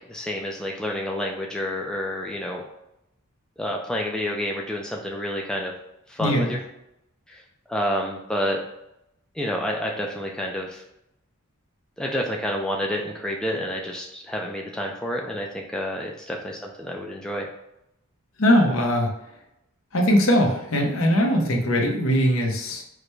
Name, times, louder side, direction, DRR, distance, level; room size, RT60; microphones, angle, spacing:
voice 1, 0.0-2.6 3.6-5.7 6.1-6.6 7.3-7.4 7.7-8.6 9.3-10.8 12.0-17.5, equal, 5° left, -1 dB, 0.3 m, -29 dB
voice 2, 6.2-6.6 18.4-19.1 19.9-22.8, equal, 65° left, 1 dB, 0.8 m, -20 dB
4.8 x 2.1 x 4.6 m, 0.83 s
head